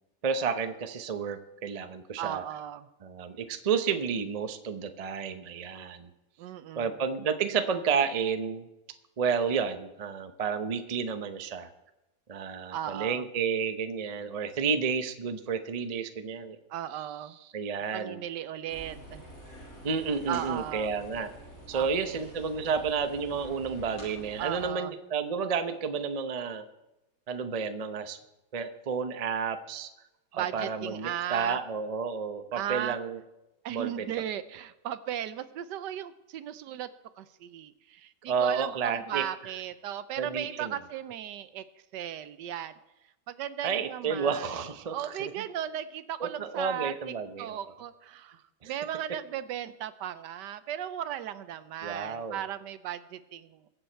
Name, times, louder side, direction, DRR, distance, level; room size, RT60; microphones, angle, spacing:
voice 1, 0.2-2.4 3.0-6.1 6.8-8.7 9.2-11.7 12.3-16.6 17.0-17.1 17.5-18.2 19.8-21.3 21.7-26.6 27.3-28.2 28.5-29.9 30.3-33.2 33.7-34.1 38.3-39.2 40.2-40.7 43.6-45.3 46.2-47.6 48.6-48.7 51.8-52.4, right 6 dB, 45° right, 8 dB, 0.5 m, -31 dB
voice 2, 2.2-2.9 6.4-6.9 12.7-13.2 16.7-17.4 17.9-19.2 20.3-20.9 21.7-22.3 24.4-24.9 30.3-31.6 32.5-33.0 33.6-36.9 37.2-41.6 41.9-42.7 43.3-44.5 44.9-46.9 47.4-53.6, right 11 dB, 75° right, 14 dB, 1.2 m, -36 dB
sound 1, 18.7-24.7, right 1 dB, 50° left, 7.0 m, -48 dB
22.0 x 8.0 x 4.5 m, 0.96 s
omnidirectional pair, 1.9 m